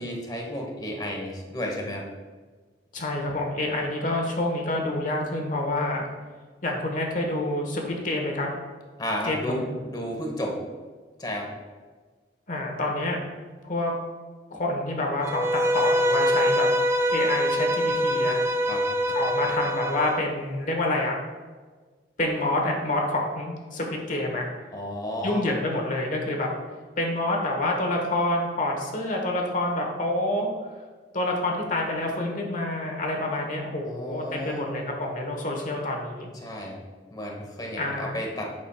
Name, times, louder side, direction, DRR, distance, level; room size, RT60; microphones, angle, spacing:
voice 1, 0.0-2.1 9.0-10.6 11.2-11.5 18.7-18.9 24.7-25.4 33.8-34.7 36.4-36.8 37.1-38.5, equal, 25° left, 0 dB, 1.2 m, -32 dB
voice 2, 2.9-6.0 6.6-8.5 9.2-9.6 12.5-13.2 13.6-13.9 14.5-16.7 17.1-18.4 19.1-21.2 22.2-24.5 25.2-26.5 27.0-30.5 31.1-36.3 37.8-38.2, left 1 dB, 50° left, 1 dB, 1.2 m, -27 dB
Bowed string instrument, 15.2-20.2, equal, 15° right, 0.3 m, -24 dB
8.6 x 6.1 x 2.3 m, 1.4 s
head